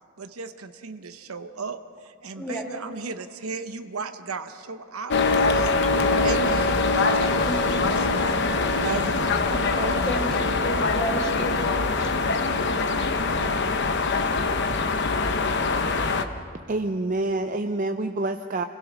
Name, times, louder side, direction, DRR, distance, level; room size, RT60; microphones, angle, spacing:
voice 1, 0.2-9.5, right 4 dB, 85° right, 9 dB, 0.9 m, -36 dB
sound 1, 5.1-16.3, left 3 dB, 55° left, 0.9 m, -23 dB
voice 2, 7.4-7.9 9.5-11.7 14.1-14.5, right 1 dB, 5° left, -1 dB, 2.5 m, -32 dB
voice 3, 16.7-18.6, right 2 dB, 35° right, 7 dB, 0.5 m, -27 dB
27.0 x 16.5 x 6.0 m, 2.2 s
head